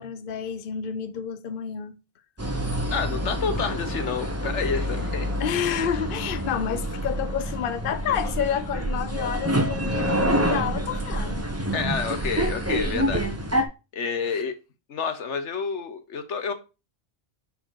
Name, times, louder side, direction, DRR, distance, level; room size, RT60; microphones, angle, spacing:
voice 1, 0.0-2.0 5.4-11.5 14.2-14.4, left 9 dB, 55° left, 0.9 m, -29 dB
sound 1, 2.4-13.6, equal, 15° right, 1.1 m, -27 dB
voice 2, 2.9-5.3 11.7-13.2 13.9-14.5 14.9-16.5, left 5 dB, 80° left, 1.4 m, -29 dB
10.5 x 4.4 x 4.7 m
omnidirectional pair, 1.2 m